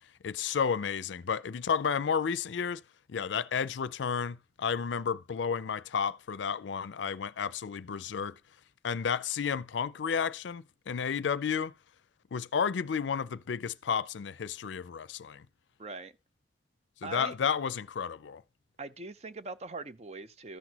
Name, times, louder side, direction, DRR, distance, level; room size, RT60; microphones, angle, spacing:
voice 1, 0.2-2.8 3.1-8.4 8.8-11.7 12.3-15.5 17.0-18.4, left 6 dB, 85° left, 0.4 m, -32 dB
voice 2, 15.8-16.1 17.0-17.4 18.8-20.6, right 3 dB, 35° right, 0.5 m, -41 dB
13.5 x 6.1 x 2.9 m
head